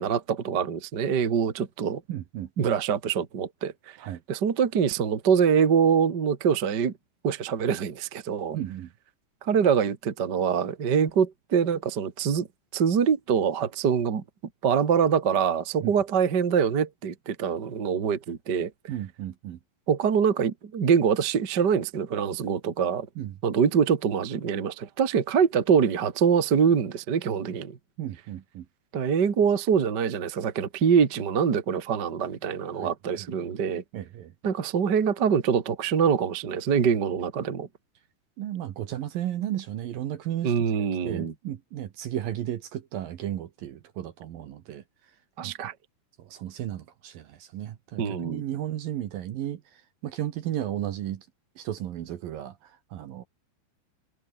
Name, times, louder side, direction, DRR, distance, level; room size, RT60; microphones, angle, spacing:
voice 1, 0.0-2.0 2.6-4.0 4.3-6.9 7.2-8.6 9.4-12.5 12.7-14.2 14.6-18.7 19.9-23.1 23.4-27.8 28.9-33.8 34.4-37.7 40.4-41.3 45.4-45.7 48.0-48.4, right 7 dB, 40° right, 1.5 m, -24 dB
voice 2, 2.1-2.7 4.0-4.2 8.5-8.9 15.8-15.9 18.9-19.6 23.2-23.4 28.0-28.7 32.7-33.3 33.9-34.3 38.4-40.5 41.0-44.8 45.4-45.5 46.2-51.3 51.6-53.2, right 12 dB, 65° right, 2.7 m, -34 dB
omnidirectional pair, 5.2 m